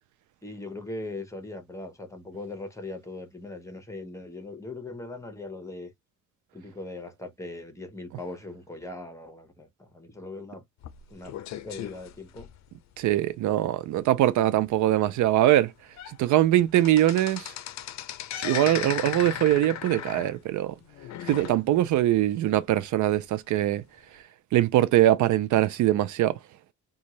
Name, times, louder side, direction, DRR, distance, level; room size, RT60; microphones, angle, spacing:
voice 1, 0.4-5.9 6.5-10.6 11.1-11.3 11.6-12.5, left 2 dB, 10° left, 1.0 m, -40 dB
sound 1, 10.8-13.0 13.5-13.7 14.0-14.1 14.7-14.8 15.4-15.5 15.8-16.2 16.5-22.0 22.3-22.4 23.2-23.3, left 11 dB, 65° left, 0.5 m, -37 dB
voice 2, 13.0-15.7 16.2-17.5 18.3-20.7 21.2-23.8 24.5-26.4, right 13 dB, 75° right, 0.5 m, -22 dB
2.5 x 2.4 x 3.0 m
cardioid pair, 90°, 30 cm